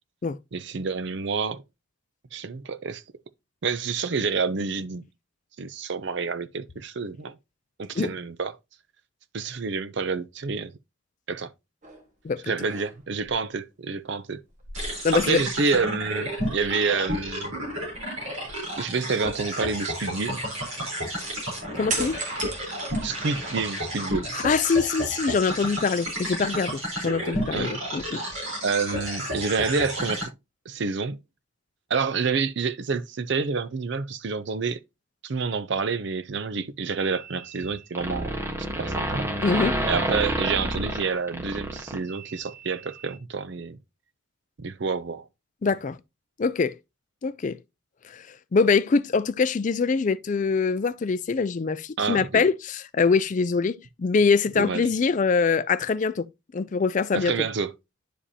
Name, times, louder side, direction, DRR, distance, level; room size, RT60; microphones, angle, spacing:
voice 1, 0.5-1.6 2.3-3.0 3.6-5.0 5.6-7.4 7.8-8.5 9.3-10.7 11.3-11.5 12.5-14.4 15.1-17.5 18.8-20.4 23.0-24.4 27.5-27.7 28.6-30.3 30.7-31.2 31.9-34.8 35.2-38.3 38.8-39.3 39.9-43.8 44.6-45.3 52.0-52.4 54.6-54.8 57.1-57.7, right 4 dB, 55° right, 0.5 m, -28 dB
sound 1, 11.8-12.1 12.5-13.3 14.5-15.8 16.1-16.2 21.9-23.7 24.2-25.1, right 3 dB, 35° right, 1.6 m, -36 dB
sound 2, 14.7-30.2, equal, 70° right, 3.8 m, -32 dB
voice 2, 15.0-15.4 21.7-22.2 24.3-28.2 39.4-39.8 45.6-46.0 46.4-46.7 47.2-47.6 48.0-48.3 48.5-56.3 56.5-57.3, left 5 dB, 35° left, 0.3 m, -24 dB
sound 3, 37.0-37.7 37.9-42.4, right 1 dB, 10° right, 1.1 m, -28 dB
10.0 x 5.0 x 2.8 m
head